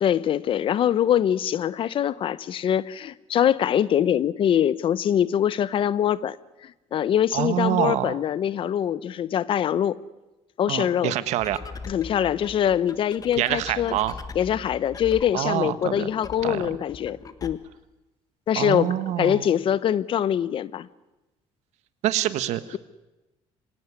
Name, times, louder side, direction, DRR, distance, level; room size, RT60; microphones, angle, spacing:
voice 1, 0.0-6.4 6.6-10.0 10.6-11.1 11.9-14.0 14.3-17.6 18.5-20.9, left 10 dB, 50° left, 0.8 m, -23 dB
voice 2, 7.3-8.2 10.7-11.6 13.4-14.1 15.3-16.1 16.4-16.6 18.5-19.5 22.0-22.8, right 13 dB, 80° right, 1.4 m, -26 dB
sound 1, 11.4-17.5, left 4 dB, 30° left, 1.5 m, -41 dB
25.0 x 17.5 x 9.7 m
cardioid pair, 130°, 11 cm